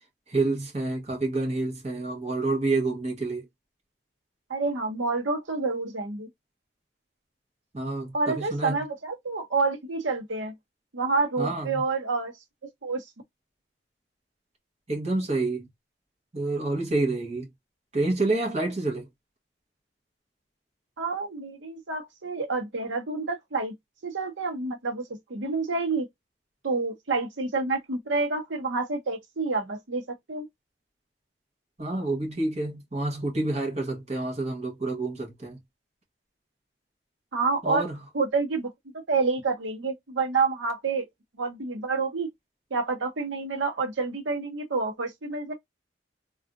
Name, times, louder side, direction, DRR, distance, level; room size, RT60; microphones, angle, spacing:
voice 1, 0.3-3.5 7.7-8.8 11.4-11.8 14.9-15.7 16.3-17.5 17.9-19.1 31.8-35.6 37.6-38.0, right 2 dB, 35° right, 1.1 m, -28 dB
voice 2, 4.5-6.3 8.1-10.5 10.9-12.4 12.6-13.1 21.0-23.7 24.0-26.1 26.6-30.0 30.3-30.5 37.3-37.9 38.1-41.1 41.4-42.3 42.7-45.5, right 4 dB, 85° right, 0.9 m, -28 dB
3.5 x 2.4 x 2.5 m
head